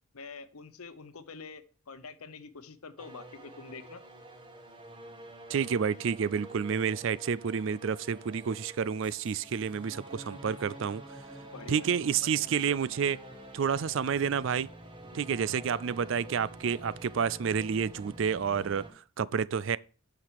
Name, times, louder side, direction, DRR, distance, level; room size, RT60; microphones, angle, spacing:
voice 1, 0.1-4.0 11.4-12.4, left 4 dB, 80° left, 0.9 m, -46 dB
sound 1, 3.0-18.9, right 1 dB, 20° right, 1.4 m, -48 dB
voice 2, 5.5-11.0 11.7-13.2 13.5-14.7 15.1-19.8, right 7 dB, 60° right, 0.4 m, -29 dB
9.0 x 5.9 x 4.7 m
head